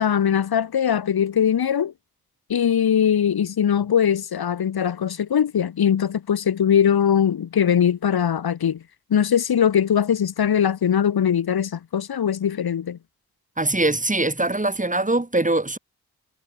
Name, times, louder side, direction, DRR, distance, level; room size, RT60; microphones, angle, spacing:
voice 1, 0.0-1.9 2.5-8.8 9.1-13.0, left 8 dB, 75° left, 5.3 m, -21 dB
voice 2, 13.6-15.8, right 2 dB, 20° right, 7.8 m, -22 dB
cardioid pair, 55°, 37 cm